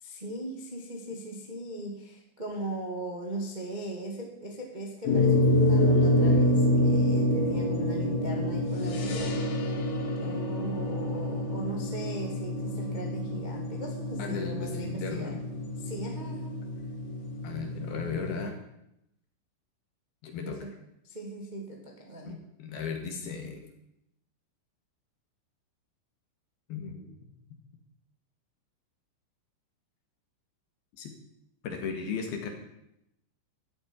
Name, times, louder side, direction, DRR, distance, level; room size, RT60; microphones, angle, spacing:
voice 1, 0.0-9.4 10.2-15.4 15.8-16.6 20.4-20.7 21.0-22.4, right 2 dB, 25° right, 0 dB, 1.0 m, -39 dB
sound 1, 5.1-18.4, left 1 dB, 85° left, 5.7 m, -27 dB
voice 2, 14.2-15.4 17.4-18.6 20.2-20.7 22.3-23.7 26.7-27.4 31.0-31.2 31.6-32.5, left 5 dB, 60° left, 4 dB, 3.3 m, -36 dB
14.0 x 9.1 x 10.0 m, 0.83 s
omnidirectional pair, 5.8 m